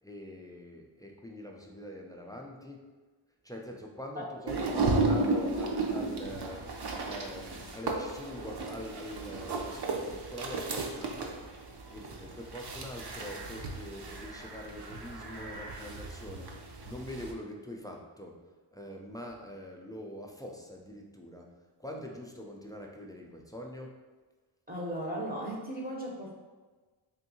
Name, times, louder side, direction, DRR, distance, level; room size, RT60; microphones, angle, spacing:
voice 1, 0.0-2.9 3.4-11.4 11.9-18.4 18.7-21.5 21.8-24.0, left 1 dB, 10° left, -1 dB, 0.3 m, -44 dB
sound 1, 4.5-17.3, right 3 dB, 55° right, 0.6 m, -34 dB
voice 2, 24.7-26.3, right 1 dB, 20° right, -3 dB, 0.7 m, -36 dB
3.6 x 2.6 x 2.7 m, 1.3 s
cardioid pair, 55°, 50 cm